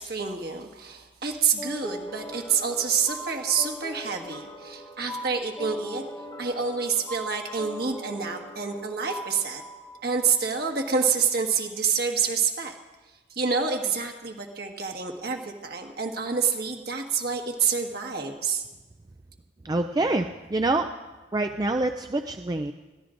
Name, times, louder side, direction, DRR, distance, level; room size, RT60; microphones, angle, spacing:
voice 1, 0.0-6.0 6.4-9.6 10.0-12.8 13.3-18.6, right 6 dB, 55° right, 2 dB, 1.6 m, -27 dB
sound 1, 1.6-10.8, equal, 20° left, 1.0 m, -40 dB
voice 2, 19.6-20.9 21.3-22.7, right 2 dB, 20° right, 6 dB, 0.3 m, -26 dB
21.5 x 15.5 x 2.5 m, 1.2 s
head